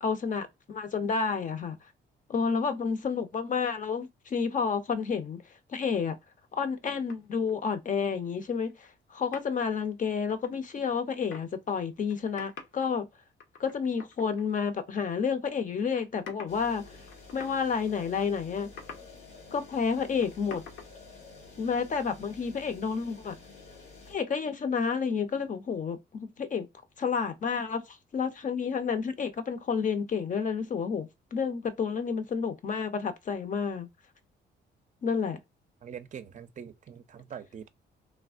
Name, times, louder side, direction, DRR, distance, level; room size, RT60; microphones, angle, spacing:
voice 1, 0.0-1.8 2.3-5.4 5.7-6.2 6.5-13.1 13.6-16.8 17.3-18.7 19.5-20.6 21.6-23.4 24.1-26.7 27.0-33.9 35.0-35.4, left 6 dB, 40° left, 0.7 m, -30 dB
sound 1, 7.1-7.5 8.7-8.9 9.3-9.4 10.1-11.5 12.0-12.8 13.4-14.7 15.0-15.1 15.9-16.7 17.0-17.6 17.9-18.0 18.7-19.1 19.9-20.0 20.2-20.9, left 5 dB, 70° left, 0.9 m, -46 dB
sound 2, 16.5-24.1, left 3 dB, 85° left, 1.5 m, -50 dB
voice 2, 35.8-37.7, right 8 dB, 40° right, 0.5 m, -43 dB
3.3 x 2.0 x 2.4 m
cardioid pair, 90°, 20 cm